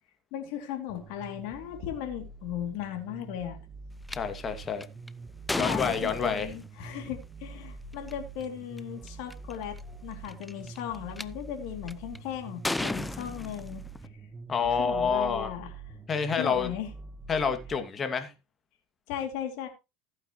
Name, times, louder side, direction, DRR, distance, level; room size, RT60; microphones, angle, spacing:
voice 1, 0.3-3.6 5.5-13.9 14.7-15.7 16.4-16.9 19.1-19.7, left 10 dB, 60° left, 2.9 m, -36 dB
sound 1, 0.9-17.8, right 3 dB, 20° right, 1.8 m, -45 dB
voice 2, 4.1-4.8 5.6-6.5 14.5-15.5 16.1-16.7 17.3-18.3, left 6 dB, 30° left, 2.3 m, -28 dB
sound 2, 4.1-4.2 4.8-6.7 7.9-8.1 8.8-8.9 9.1-9.5 10.2-11.2 11.9-12.2 12.6-14.1, left 2 dB, 10° left, 0.7 m, -33 dB
15.5 x 9.0 x 3.1 m
hypercardioid pair, 80°, 0 cm